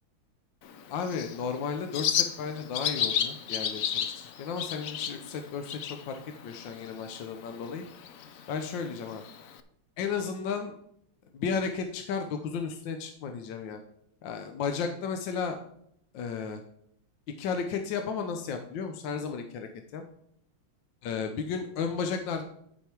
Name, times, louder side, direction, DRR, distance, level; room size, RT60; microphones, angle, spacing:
Bird, 0.6-9.6, left 8 dB, 85° left, 0.7 m, -34 dB
voice 1, 0.9-7.8 8.5-9.2 10.0-10.8 11.3-13.8 14.2-15.6 16.1-16.6 17.4-20.0 21.0-22.4, left 6 dB, 70° left, 6 dB, 1.4 m, -34 dB
11.5 x 5.2 x 4.5 m, 0.70 s
omnidirectional pair, 2.3 m